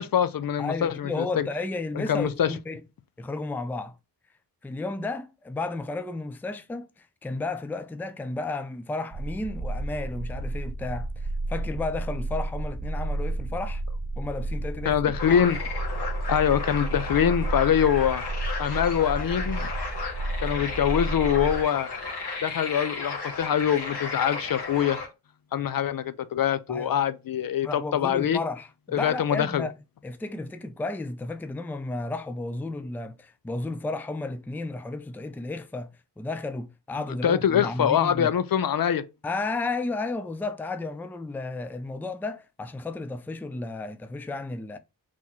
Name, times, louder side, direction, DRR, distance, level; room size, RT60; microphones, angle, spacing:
voice 1, 0.0-1.5 1.9-2.5 14.9-15.6 16.3-18.2 18.6-19.7 20.4-21.9 22.4-25.0 25.5-28.4 28.9-29.7 37.2-39.0, left 9 dB, 60° left, 0.5 m, -24 dB
voice 2, 0.6-2.8 3.2-4.0 4.6-13.8 14.2-15.0 26.7-27.0 27.6-29.7 30.0-35.9 36.2-38.3 39.2-44.8, left 3 dB, 5° left, 0.4 m, -33 dB
sound 1, 9.1-21.6, right 2 dB, 20° right, 0.8 m, -32 dB
sound 2, 15.2-25.1, left 4 dB, 75° left, 1.8 m, -34 dB
4.2 x 3.0 x 4.2 m
wide cardioid pair, 95°, 40 cm